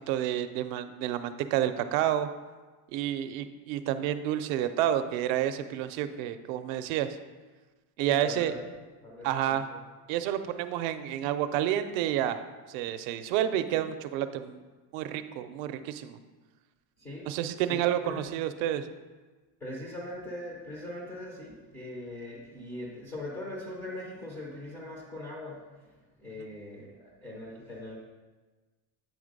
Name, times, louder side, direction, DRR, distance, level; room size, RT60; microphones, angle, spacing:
voice 1, 0.1-2.3 2.9-7.1 8.0-8.5 9.2-9.7 10.1-12.4 12.7-14.6 14.9-16.2 17.3-18.9, right 11 dB, 65° right, 10 dB, 0.5 m, -29 dB
voice 2, 8.1-8.6 9.0-9.8 17.0-17.3 17.6-18.2 19.6-25.6 26.2-28.0, left 1 dB, 5° left, -3 dB, 0.3 m, -41 dB
8.5 x 3.4 x 5.2 m, 1.3 s
cardioid pair, 180°, 45 cm